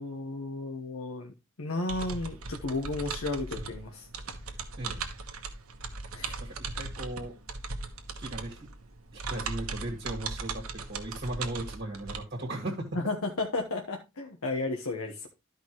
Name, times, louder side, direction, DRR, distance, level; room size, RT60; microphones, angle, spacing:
voice 1, 0.0-1.3 1.6-4.1 6.1-6.4 12.9-15.3, left 2 dB, 85° left, 2 dB, 1.1 m, -33 dB
sound 1, 1.9-12.2, right 4 dB, 85° right, 1.3 m, -38 dB
voice 2, 4.8-5.3 6.4-7.3 8.2-8.7 9.1-12.9, right 1 dB, 45° right, -1 dB, 1.9 m, -37 dB
13.0 x 5.0 x 3.0 m, 0.25 s
head